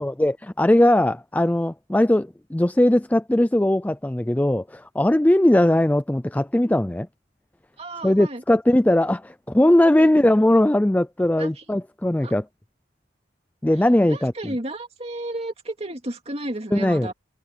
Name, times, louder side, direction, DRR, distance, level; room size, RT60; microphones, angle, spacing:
voice 1, 0.0-7.1 8.0-12.5 13.6-14.5 16.7-17.1, left 1 dB, 10° left, 0.3 m, -19 dB
voice 2, 7.8-8.4 10.0-10.1 11.4-11.6 12.2-12.3 14.1-17.1, right 1 dB, 30° right, 2.5 m, -32 dB
head